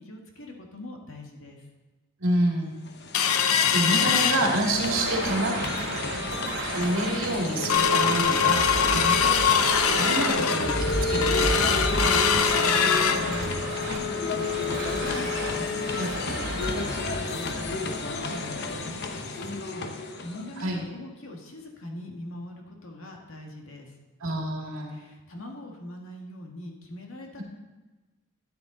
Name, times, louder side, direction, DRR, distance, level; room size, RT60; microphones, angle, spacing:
voice 1, 0.0-1.6 8.7-9.1 12.6-13.5 13.8-23.9 24.9-27.4, left 1 dB, 65° left, 1 dB, 1.8 m, -42 dB
voice 2, 2.2-2.7 3.7-5.6 6.1-6.2 6.7-9.3 9.9-12.2 15.9-16.1 20.6-20.8 24.2-25.0 27.4-27.5, right 1 dB, 70° right, -1 dB, 2.4 m, -28 dB
sound 1, 2.7-20.8, left 3 dB, 50° left, 0.9 m, -33 dB
sound 2, 3.1-5.0 5.4-5.5 5.9-6.2 6.7-6.8 7.1-17.7 18.0-18.1 18.4-18.6 19.1-19.2, left 6 dB, 85° left, 0.7 m, -25 dB
sound 3, 4.7-18.6, right 1 dB, 50° right, 3.4 m, -33 dB
13.0 x 9.5 x 3.9 m, 1.2 s
head